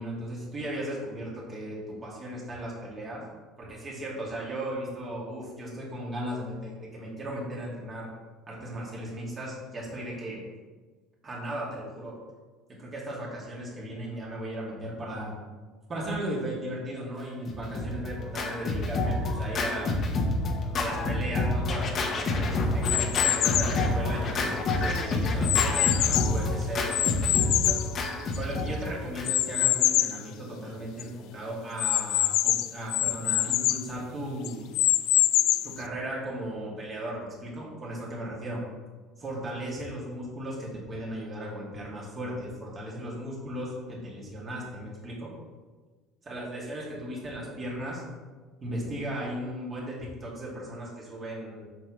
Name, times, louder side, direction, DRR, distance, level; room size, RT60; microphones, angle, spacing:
voice 1, 0.0-3.2 3.6-8.1 8.5-10.4 11.2-12.2 12.7-15.3 15.9-20.0 20.8-27.8 28.4-34.7 35.6-38.6 39.2-45.3 46.3-48.0 48.6-51.6, right 1 dB, 25° right, -4 dB, 2.4 m, -36 dB
Scratching (performance technique), 17.5-29.5, left 2 dB, 35° left, 1.1 m, -28 dB
sound 1, 22.8-23.8 24.4-26.4 26.9-28.6 29.2-30.2 30.7-30.8 31.0-31.1 31.8-33.9 34.4-35.8, left 14 dB, 60° left, 0.4 m, -25 dB
7.4 x 6.9 x 3.1 m, 1.3 s
cardioid pair, 145°, 0 cm